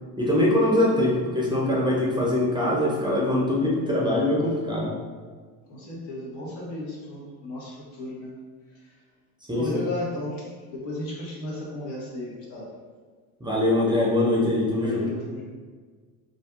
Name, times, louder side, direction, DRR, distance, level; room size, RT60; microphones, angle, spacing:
voice 1, 0.2-4.9 9.5-9.8 13.4-15.0, left 1 dB, 10° right, -4 dB, 0.4 m, -23 dB
voice 2, 5.7-8.3 8.7-9.0 9.5-12.7 14.8-15.4, left 1 dB, 80° left, -4 dB, 0.9 m, -34 dB
2.5 x 2.4 x 2.3 m, 1.5 s
supercardioid pair, 75°, 45 cm